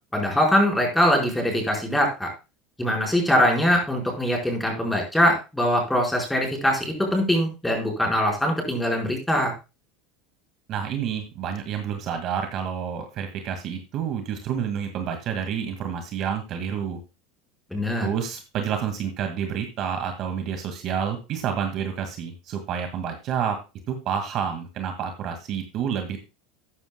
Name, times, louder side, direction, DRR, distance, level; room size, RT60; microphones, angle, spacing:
voice 1, 0.1-2.3 2.8-9.5 17.7-18.1, equal, 5° left, 0 dB, 4.7 m, -22 dB
voice 2, 10.7-17.0 18.0-23.6 23.9-26.2, right 8 dB, 45° right, 5 dB, 2.0 m, -29 dB
13.5 x 9.7 x 2.3 m, 0.28 s
supercardioid pair, 120°, 0 cm